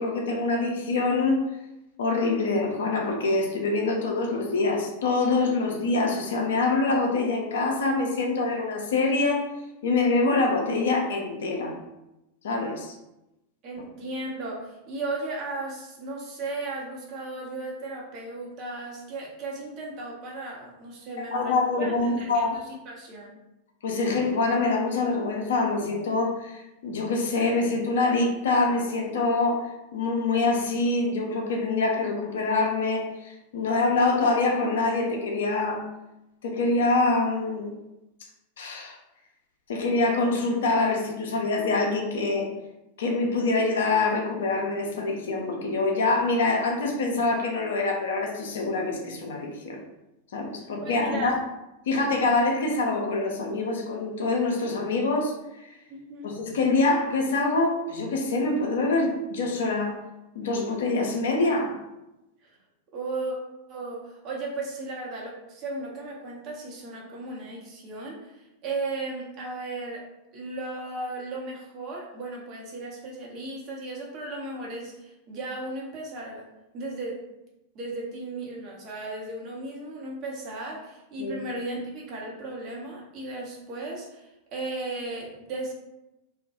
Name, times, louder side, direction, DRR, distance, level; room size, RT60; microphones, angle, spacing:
voice 1, 0.0-1.4 2.0-9.5 9.8-11.8 12.4-13.0 21.2-22.6 23.8-35.9 36.4-37.7 38.6-39.0 39.7-42.5 43.0-49.8 50.3-51.4 51.9-55.8 56.2-60.0 60.3-61.8 81.2-81.3, left 3 dB, 60° left, 1 dB, 0.4 m, -25 dB
voice 2, 13.6-23.4 50.8-51.3 55.9-56.3 62.4-62.6 62.9-63.4 63.7-70.0 70.3-76.5 76.7-77.2 77.7-85.7, right 2 dB, 40° right, -2 dB, 0.6 m, -35 dB
2.2 x 2.0 x 2.7 m, 0.93 s
figure-of-eight pair, 90°, 0 cm